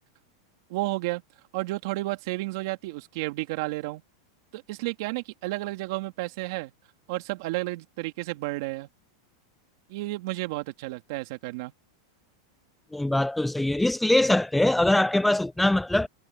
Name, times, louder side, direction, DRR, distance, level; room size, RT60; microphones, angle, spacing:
voice 1, 0.7-1.2 1.5-4.0 4.5-6.7 7.1-8.9 9.9-11.7, right 21 dB, 55° right, 2.5 m, -32 dB
voice 2, 12.9-16.1, left 1 dB, 5° left, 0.4 m, -22 dB
supercardioid pair, 140°, 2 cm